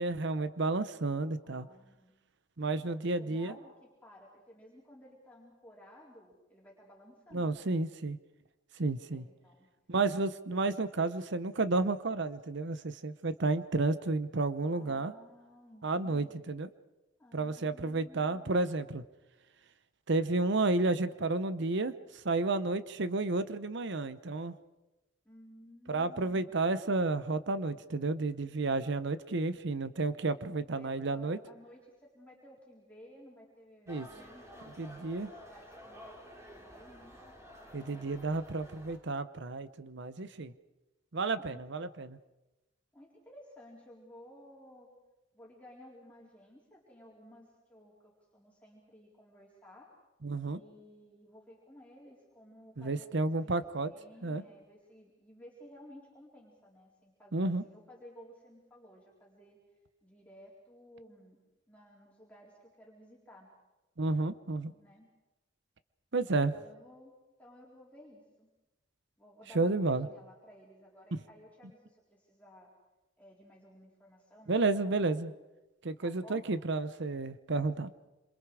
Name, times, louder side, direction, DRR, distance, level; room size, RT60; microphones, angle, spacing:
voice 1, 0.0-1.7 2.6-3.5 7.3-8.2 8.8-9.3 9.9-15.1 15.8-16.7 17.3-19.0 20.1-24.5 25.9-31.4 33.9-34.1 34.8-35.3 37.7-40.5 41.1-42.2 50.2-50.6 52.8-53.9 54.2-54.4 57.3-57.6 64.0-64.7 66.1-66.5 69.5-70.1 74.5-75.3 75.8-77.9, right 3 dB, 65° right, 13 dB, 0.9 m, -31 dB
voice 2, 1.4-2.2 2.7-7.7 9.1-9.7 14.7-16.5 17.2-18.6 25.2-26.6 30.7-37.2 37.8-38.1 41.3-41.6 42.9-44.9 45.3-49.9 50.4-53.5 53.8-59.6 60.0-61.4 61.7-63.5 64.7-65.1 66.5-67.1 67.4-68.5 69.2-72.7 73.2-75.0 75.3-75.4 76.0-76.5, equal, 10° left, -5 dB, 4.2 m, -56 dB
sound 1, 33.9-39.0, equal, 15° right, 4.0 m, -51 dB
27.5 x 27.0 x 4.9 m, 1.0 s
head